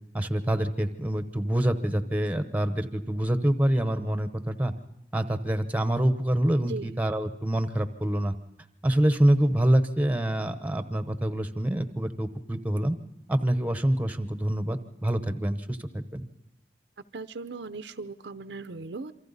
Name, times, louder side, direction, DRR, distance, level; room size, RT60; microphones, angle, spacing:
voice 1, 0.1-4.7 5.1-8.3 8.8-13.0 13.3-16.3, right 1 dB, 10° right, 9 dB, 0.9 m, -26 dB
voice 2, 17.1-19.1, right 3 dB, 70° right, 11 dB, 0.7 m, -38 dB
27.5 x 24.5 x 4.1 m, 0.86 s
head